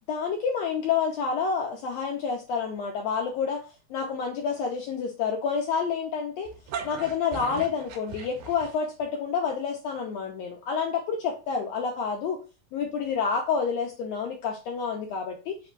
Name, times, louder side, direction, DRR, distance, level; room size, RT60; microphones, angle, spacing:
voice 1, 0.1-6.5 6.8-12.4 12.7-15.6, left 6 dB, 80° left, 1 dB, 1.6 m, -29 dB
sound 1, 6.5-9.1, right 5 dB, 70° right, 1.8 m, -38 dB
4.9 x 2.2 x 4.5 m, 0.32 s
omnidirectional pair, 3.5 m